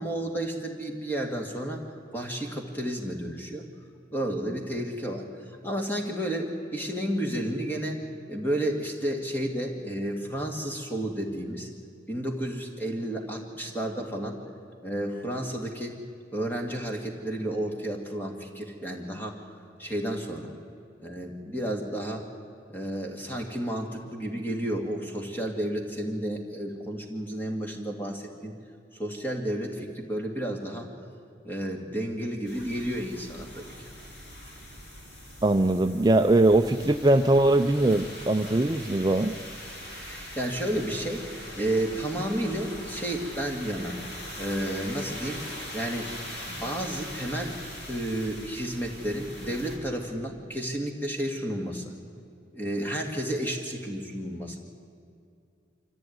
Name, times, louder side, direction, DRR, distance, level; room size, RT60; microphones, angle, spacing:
voice 1, 0.0-1.8 2.1-3.6 4.1-8.0 8.3-11.7 12.1-14.4 14.8-15.9 16.3-19.4 19.8-20.5 21.0-22.2 22.7-28.5 28.9-30.9 31.4-33.9 39.9-41.2 41.6-44.0 44.4-45.4 45.7-46.1 46.4-47.5 47.9-51.9 52.5-54.6, right 1 dB, 10° left, 1 dB, 2.3 m, -31 dB
sound 1, 32.4-49.8, left 1 dB, 60° left, 4.1 m, -41 dB
voice 2, 35.4-39.3, right 2 dB, 20° right, 7 dB, 0.5 m, -21 dB
25.0 x 14.5 x 9.5 m, 2.4 s
head